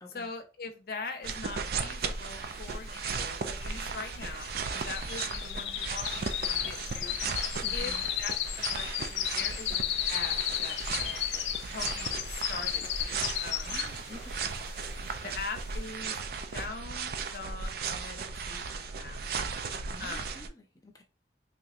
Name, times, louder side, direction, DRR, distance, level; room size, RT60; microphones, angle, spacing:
voice 1, 0.1-7.2 7.7-11.4 11.7-13.8 15.2-16.2 16.5-19.2 20.0-20.4, left 4 dB, 55° left, 0.7 m, -42 dB
sound 1, 1.2-20.5, right 5 dB, 55° right, 0.4 m, -36 dB
sound 2, 2.4-2.5 2.7-14.2 14.6-14.9 15.3-15.4, left 12 dB, 75° left, 0.3 m, -34 dB
sound 3, 6.1-15.2, right 2 dB, 80° right, 1.0 m, -53 dB
voice 2, 7.6-8.0 13.6-14.6 19.9-21.0, left 1 dB, 20° left, 0.7 m, -50 dB
3.4 x 3.0 x 2.5 m
head